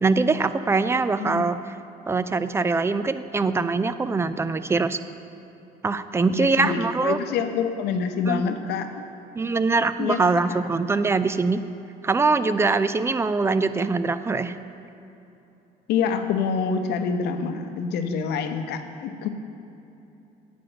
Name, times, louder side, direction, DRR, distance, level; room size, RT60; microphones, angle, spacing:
voice 1, 0.0-1.6 2.1-5.0 5.8-7.2 8.3-8.4 9.3-11.6 12.0-14.6, right 4 dB, 15° right, 12 dB, 0.3 m, -23 dB
voice 2, 1.2-1.5 6.3-9.0 10.0-10.2 10.4-10.6 15.9-19.3, left 6 dB, 80° left, 8 dB, 0.7 m, -26 dB
8.8 x 5.1 x 7.8 m, 2.9 s
cardioid pair, 110°, 17 cm